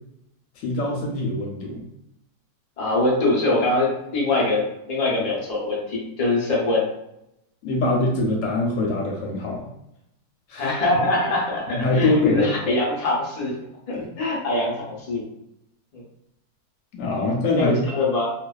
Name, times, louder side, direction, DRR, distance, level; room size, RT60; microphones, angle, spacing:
voice 1, 0.6-1.8 7.6-9.6 10.5-10.7 11.7-12.8 13.9-14.1 16.9-17.8, left 2 dB, 70° left, -1 dB, 0.8 m, -23 dB
voice 2, 2.8-6.9 10.5-13.6 13.9-15.2 15.9-16.0 17.2-17.3 17.6-18.3, left 2 dB, 85° left, -4 dB, 0.3 m, -23 dB
2.5 x 2.2 x 2.2 m, 0.82 s
omnidirectional pair, 1.7 m